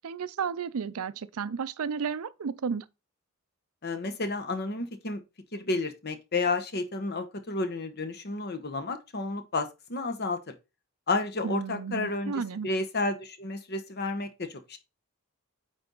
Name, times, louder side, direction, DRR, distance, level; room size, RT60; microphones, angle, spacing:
voice 1, 0.0-2.9 11.4-12.7, right 6 dB, 80° right, 0.5 m, -33 dB
voice 2, 3.8-5.2 5.5-10.5 11.1-14.8, left 3 dB, 50° left, 1.0 m, -31 dB
8.7 x 4.0 x 4.0 m
head